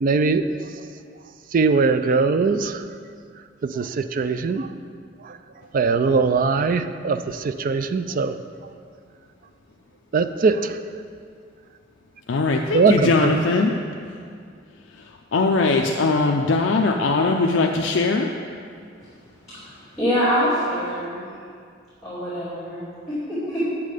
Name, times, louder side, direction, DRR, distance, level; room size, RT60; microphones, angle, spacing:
voice 1, 0.0-0.4 1.5-2.8 3.6-4.7 5.7-8.3 10.1-10.8 12.7-13.4, right 4 dB, 45° right, 10 dB, 0.4 m, -21 dB
voice 2, 12.3-13.7 15.3-18.3, left 3 dB, 70° left, 2 dB, 0.5 m, -20 dB
voice 3, 19.6-21.2 22.0-23.7, equal, ahead, -14 dB, 2.6 m, -25 dB
8.3 x 7.4 x 5.0 m, 2.3 s
head